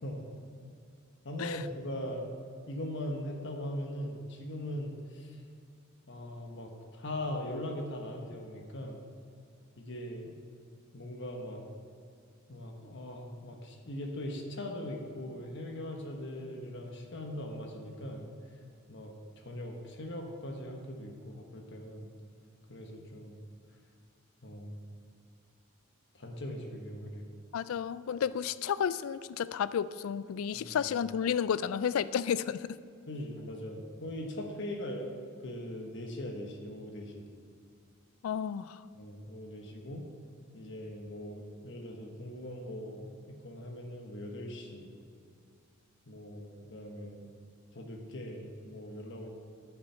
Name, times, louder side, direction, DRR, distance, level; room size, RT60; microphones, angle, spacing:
voice 1, 1.2-2.3 2.7-5.4 6.1-9.0 9.8-10.3 10.9-11.6 12.5-18.3 18.9-19.1 19.4-22.1 22.7-23.3 24.4-24.8 26.1-27.2 30.5-30.8 33.1-35.2 35.4-37.2 38.9-40.1 40.5-44.9 46.1-47.3 47.7-49.3, left 1 dB, 60° left, 2 dB, 1.3 m, -40 dB
voice 2, 27.5-32.8 38.2-38.8, left 8 dB, 80° left, 17 dB, 0.3 m, -32 dB
9.7 x 7.1 x 5.8 m, 2.3 s
head